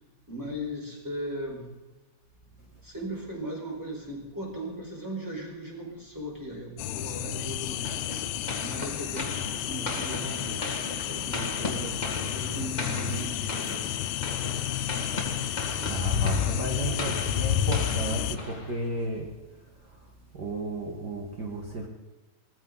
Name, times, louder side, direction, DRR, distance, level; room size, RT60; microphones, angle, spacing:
voice 1, 0.3-1.7 2.8-8.0 8.6-10.7 11.0-14.0 15.6-15.8, right 1 dB, 5° right, -2 dB, 4.4 m, -38 dB
sound 1, 6.8-18.4, left 11 dB, 85° left, 2.8 m, -30 dB
sound 2, 7.8-19.1, left 2 dB, 25° left, 1.0 m, -37 dB
voice 2, 15.9-19.3 20.4-21.9, right 2 dB, 55° right, 1 dB, 1.1 m, -33 dB
20.5 x 14.5 x 4.1 m, 1.2 s
omnidirectional pair, 4.7 m